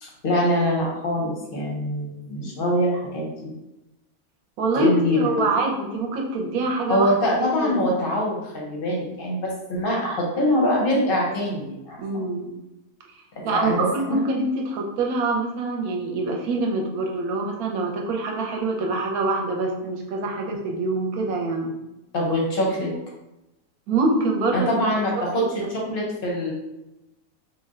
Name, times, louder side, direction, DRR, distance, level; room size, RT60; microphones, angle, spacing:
voice 1, 0.0-3.5 4.7-5.5 6.9-12.0 13.4-13.8 22.1-22.9 24.5-26.5, left 1 dB, 50° left, -2 dB, 0.7 m, -24 dB
voice 2, 4.6-7.1 7.6-7.8 12.0-12.6 13.4-21.7 23.9-24.7 25.4-25.7, right 2 dB, 70° right, 0 dB, 1.0 m, -25 dB
3.2 x 2.2 x 3.5 m, 0.95 s
omnidirectional pair, 1.7 m